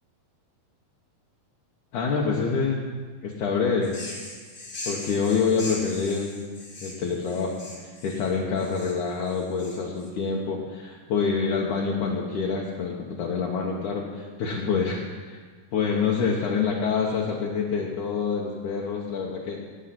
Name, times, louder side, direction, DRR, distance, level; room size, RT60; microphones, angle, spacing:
voice 1, 1.9-2.9 3.2-4.0 4.9-6.4 6.8-15.0 15.3-15.4 15.7-19.6, left 5 dB, 65° left, -2 dB, 2.3 m, -26 dB
sound 1, 3.8-10.1, left 2 dB, 35° left, 1.5 m, -40 dB
15.0 x 10.0 x 6.0 m, 1.5 s
omnidirectional pair, 4.4 m